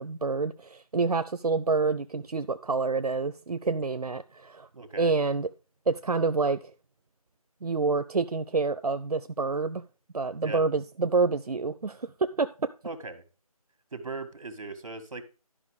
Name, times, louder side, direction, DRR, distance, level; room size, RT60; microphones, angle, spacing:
voice 1, 0.0-4.7 5.0-5.5 5.9-6.7 7.6-9.8 10.1-12.7, right 4 dB, 85° right, 0.7 m, -27 dB
voice 2, 4.7-5.1 10.4-10.6 12.8-13.2 13.9-15.2, right 3 dB, 55° right, 2.0 m, -38 dB
12.0 x 5.6 x 4.8 m
figure-of-eight pair, 170°, 19 cm